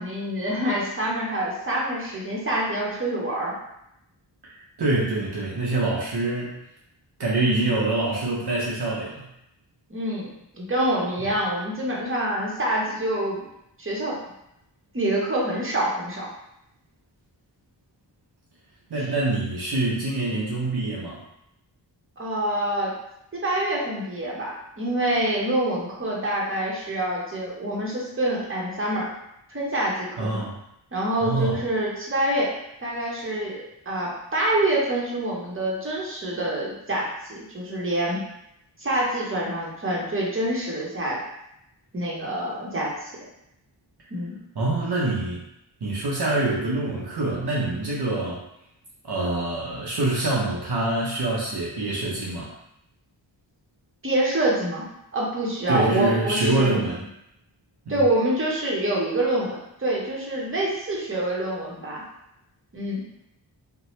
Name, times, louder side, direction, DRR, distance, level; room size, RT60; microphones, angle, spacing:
voice 1, 0.0-3.5 9.9-13.4 13.8-14.2 14.9-16.3 22.2-22.9 23.3-29.1 29.5-30.4 30.9-32.5 32.8-33.6 33.9-38.2 38.8-41.2 41.9-43.1 44.1-44.3 54.0-54.8 55.1-56.8 57.9-62.0 62.7-63.0, right 1 dB, 25° right, -4 dB, 1.0 m, -26 dB
voice 2, 4.8-6.6 7.2-9.3 18.9-21.2 30.2-30.6 31.2-31.6 44.6-45.4 45.8-48.4 49.0-52.5 55.7-57.0 57.9-58.0, right 2 dB, 55° right, -5 dB, 0.7 m, -25 dB
2.8 x 2.2 x 3.1 m, 0.82 s
cardioid pair, 45°, 46 cm